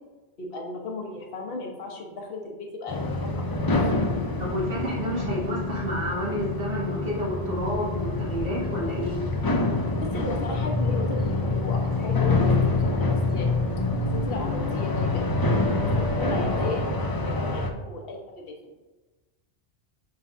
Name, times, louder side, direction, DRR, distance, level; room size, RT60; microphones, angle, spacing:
voice 1, 0.4-3.6 9.7-13.6 14.1-15.2 16.0-18.7, left 3 dB, 55° left, 1 dB, 1.2 m, -35 dB
sound 1, 2.9-17.7, left 2 dB, 35° left, 0.3 m, -26 dB
voice 2, 4.4-9.2, equal, 55° right, -5 dB, 2.0 m, -30 dB
9.1 x 3.9 x 2.6 m, 1.2 s
omnidirectional pair, 1.2 m